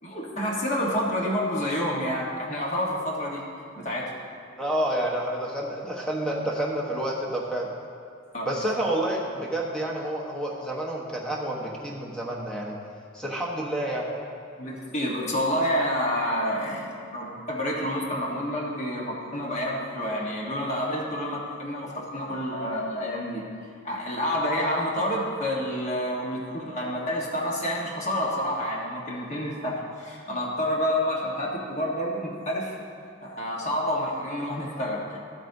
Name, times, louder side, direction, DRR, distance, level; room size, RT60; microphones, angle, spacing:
voice 1, 0.0-3.4 3.7-4.1 8.3-8.5 14.6-23.4 23.8-32.8 33.2-35.2, equal, 35° left, -3 dB, 1.3 m, -28 dB
voice 2, 4.6-7.7 8.4-12.8 13.1-14.1, right 1 dB, 5° left, -3 dB, 1.1 m, -29 dB
13.5 x 8.2 x 2.7 m, 2.4 s
head